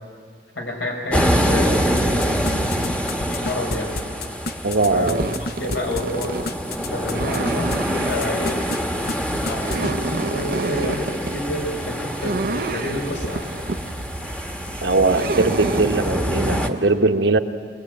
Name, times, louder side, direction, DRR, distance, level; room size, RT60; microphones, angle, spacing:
voice 1, 0.5-2.5 3.3-3.9 4.9-6.4 6.9-8.6 9.1-13.5, left 1 dB, 80° left, 1 dB, 4.7 m, -29 dB
sound 1, 1.1-16.7, equal, 5° left, 1.2 m, -26 dB
sound 2, 2.0-7.8 8.1-8.8 9.1-9.2 9.5-9.9, left 3 dB, 55° left, 0.9 m, -29 dB
voice 2, 4.6-5.2 14.8-17.4, right 3 dB, 80° right, 6 dB, 1.2 m, -20 dB
sound 3, 5.0-16.2, right 3 dB, 55° right, 0.6 m, -31 dB
23.0 x 22.0 x 9.1 m, 2.1 s
head